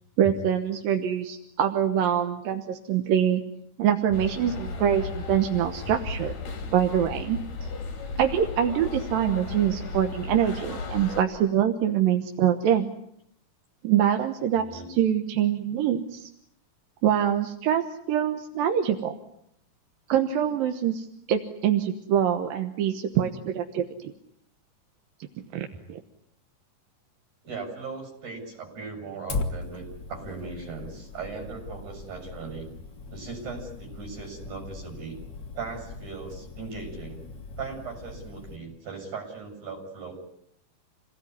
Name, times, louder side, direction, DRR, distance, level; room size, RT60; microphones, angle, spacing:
voice 1, 0.2-3.4 3.8-6.4 6.7-7.4 8.2-12.9 13.8-16.3 17.0-19.2 20.1-23.8 25.5-26.0, right 9 dB, 90° right, 5 dB, 3.0 m, -24 dB
sound 1, 4.1-11.2, left 3 dB, 65° left, 4.6 m, -35 dB
voice 2, 14.5-14.9 27.4-32.7 33.1-35.2 35.5-37.2 37.6-40.1, right 5 dB, 60° right, 2 dB, 9.0 m, -38 dB
Fire, 29.3-38.6, left 4 dB, 35° left, 2.6 m, -39 dB
28.5 x 18.5 x 9.7 m, 0.74 s
omnidirectional pair, 3.9 m